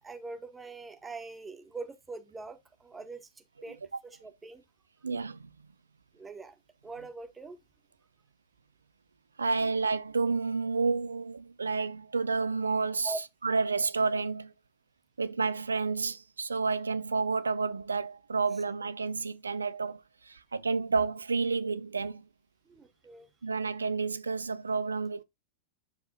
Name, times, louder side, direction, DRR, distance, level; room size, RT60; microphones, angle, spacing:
voice 1, 0.0-3.8 4.0-4.6 6.1-6.5 6.8-7.6 9.6-9.7 13.0-13.2 22.6-23.3, right 3 dB, 15° right, 1.7 m, -43 dB
voice 2, 5.0-5.5 9.4-13.1 13.4-14.5 15.2-22.3 23.4-25.2, right 4 dB, 75° right, 0.5 m, -30 dB
9.8 x 6.7 x 2.4 m
figure-of-eight pair, 90°, 0 cm